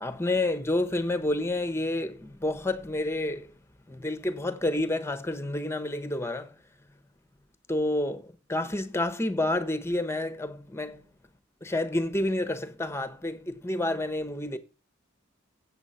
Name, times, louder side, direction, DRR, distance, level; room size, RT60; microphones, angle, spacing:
voice 1, 0.0-3.5 3.9-6.6 7.7-11.0 11.6-14.6, left 1 dB, 15° left, 1.0 m, -29 dB
8.3 x 7.9 x 5.6 m
head